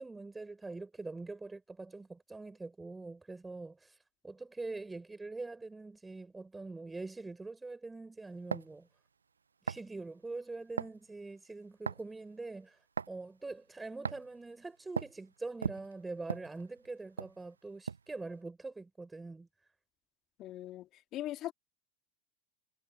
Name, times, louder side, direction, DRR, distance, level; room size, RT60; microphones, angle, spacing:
voice 1, 0.0-4.0 4.2-8.9 9.6-12.8 13.1-19.5, right 3 dB, 15° right, 5.7 m, -44 dB
sound 1, 8.5-8.8 9.7-9.9 10.8-11.0 11.9-12.2 13.0-13.2 14.0-14.3 15.0-15.2 15.6-16.9 17.2-17.4 17.9-18.1, right 6 dB, 85° right, 0.5 m, -37 dB
voice 2, 20.4-21.5, left 14 dB, 45° left, 1.9 m, -40 dB
figure-of-eight pair, 80°, 0 cm